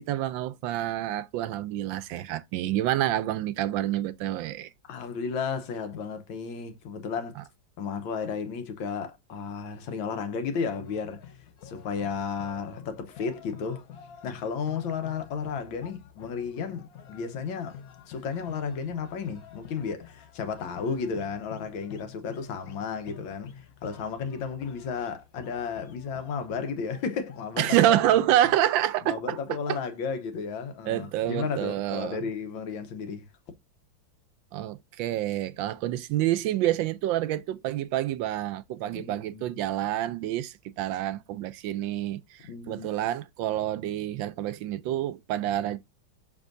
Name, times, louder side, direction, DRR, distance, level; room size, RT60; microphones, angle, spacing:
voice 1, 0.0-4.7 7.4-7.5 27.6-29.8 30.8-32.2 34.5-45.8, right 13 dB, 80° right, 1.3 m, -28 dB
voice 2, 4.9-7.4 7.8-11.2 11.6-13.8 14.2-17.8 18.1-28.0 29.0-33.3 38.9-39.5 42.5-42.9, left 5 dB, 75° left, 1.7 m, -33 dB
sound 1, 10.5-28.6, left 8 dB, 60° left, 1.0 m, -48 dB
6.2 x 6.0 x 2.5 m
omnidirectional pair, 2.2 m